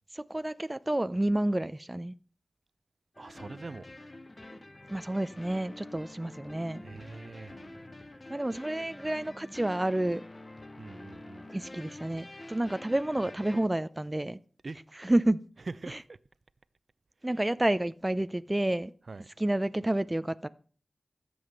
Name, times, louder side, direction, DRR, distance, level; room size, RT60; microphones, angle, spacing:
voice 1, 0.1-2.1 4.9-6.8 8.3-10.2 11.5-14.4 15.0-15.4 15.9-16.0 17.2-18.9 19.4-20.5, right 1 dB, 20° right, 0.5 m, -29 dB
sound 1, 3.1-13.7, left 2 dB, 35° left, 1.1 m, -47 dB
voice 2, 3.2-3.9 6.8-7.7 10.8-11.5 14.6-14.8 15.7-16.2 17.3-17.5 19.1-19.3, right 3 dB, 60° right, 0.6 m, -43 dB
14.0 x 7.9 x 6.6 m
wide cardioid pair, 60°, 0 cm